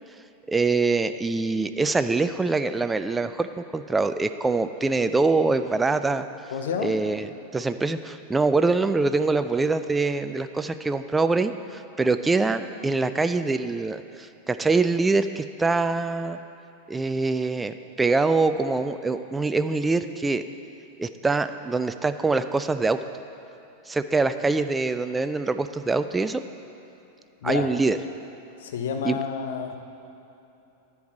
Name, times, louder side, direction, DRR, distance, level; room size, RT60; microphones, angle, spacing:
voice 1, 0.5-3.5 3.7-6.2 6.8-16.4 16.9-20.4 21.0-23.0 23.9-26.4 27.4-28.0 29.0-29.2, right 3 dB, 10° right, 10 dB, 0.3 m, -24 dB
voice 2, 6.5-7.0 27.4-27.7 28.6-29.8, left 6 dB, 60° left, 5 dB, 0.8 m, -29 dB
10.5 x 4.7 x 7.1 m, 2.9 s
figure-of-eight pair, 90°, 0 cm